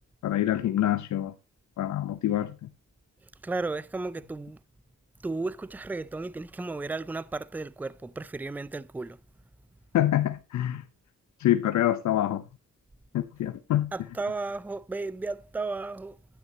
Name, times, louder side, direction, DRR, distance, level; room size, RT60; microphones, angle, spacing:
voice 1, 0.2-1.3 1.8-2.5 9.9-10.8 11.4-12.4 13.1-13.9, left 12 dB, 70° left, 0.8 m, -26 dB
voice 2, 3.4-4.6 5.2-9.2 13.9-16.2, right 3 dB, 5° right, 0.4 m, -34 dB
11.5 x 9.4 x 2.9 m
cardioid pair, 90°, 30 cm